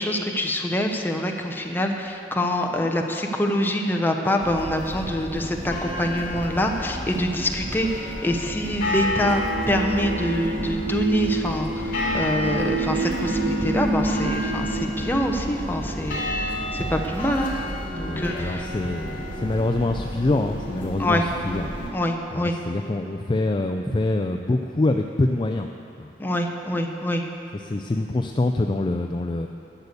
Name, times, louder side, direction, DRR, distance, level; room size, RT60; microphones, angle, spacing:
voice 1, 0.0-17.5 17.9-18.7 21.0-21.2 21.9-22.5 26.2-27.2, left 1 dB, 10° left, 2 dB, 0.8 m, -25 dB
sound 1, 4.4-21.9, left 1 dB, 50° left, 2.5 m, -31 dB
sound 2, 9.1-14.8, right 2 dB, 85° right, 1.2 m, -28 dB
voice 2, 18.1-21.7 22.3-25.7 26.0-26.1 27.6-29.5, left 2 dB, 25° left, 5 dB, 0.4 m, -25 dB
12.0 x 6.8 x 8.3 m, 2.8 s
head